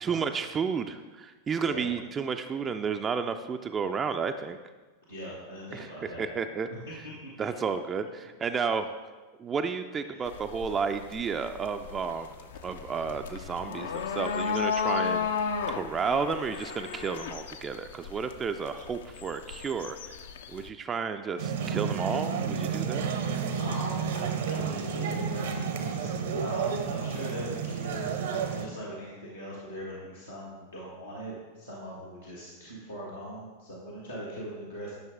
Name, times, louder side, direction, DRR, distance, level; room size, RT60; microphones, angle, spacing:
voice 1, 0.0-4.6 5.7-6.7 7.4-8.9 9.4-12.3 12.6-20.2 20.5-23.1, right 5 dB, 20° right, 7 dB, 0.3 m, -32 dB
voice 2, 5.0-6.3 6.9-7.0 7.2-7.6 10.1-10.4 23.6-26.1 26.4-34.9, equal, 85° left, -8 dB, 1.6 m, -41 dB
sound 1, 10.3-20.7, left 6 dB, 60° left, 0.5 m, -34 dB
sound 2, 21.4-28.7, right 6 dB, 60° right, 0.7 m, -31 dB
10.5 x 5.8 x 3.5 m, 1.3 s
figure-of-eight pair, 90°, 0 cm